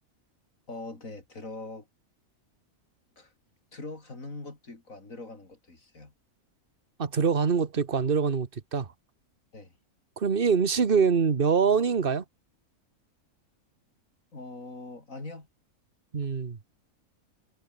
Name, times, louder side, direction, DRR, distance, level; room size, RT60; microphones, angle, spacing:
voice 1, 0.7-1.9 3.2-3.3 3.7-6.1 9.5-9.8 14.3-15.5, left 2 dB, 60° left, 4.8 m, -42 dB
voice 2, 7.0-8.9 10.2-12.2 16.1-16.6, right 6 dB, 40° right, 1.6 m, -24 dB
omnidirectional pair, 1.5 m